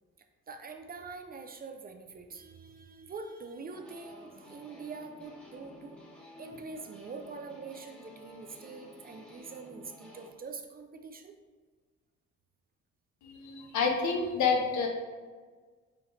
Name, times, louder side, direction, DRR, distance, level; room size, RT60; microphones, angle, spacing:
voice 1, 0.5-6.0 6.4-11.3, right 4 dB, 30° right, 5 dB, 0.4 m, -44 dB
sound 1, 3.7-10.3, left 1 dB, 5° left, 1.0 m, -52 dB
voice 2, 13.2-14.9, left 5 dB, 75° left, 2 dB, 0.8 m, -28 dB
5.7 x 2.5 x 3.0 m, 1.4 s
cardioid pair, 90°, 30 cm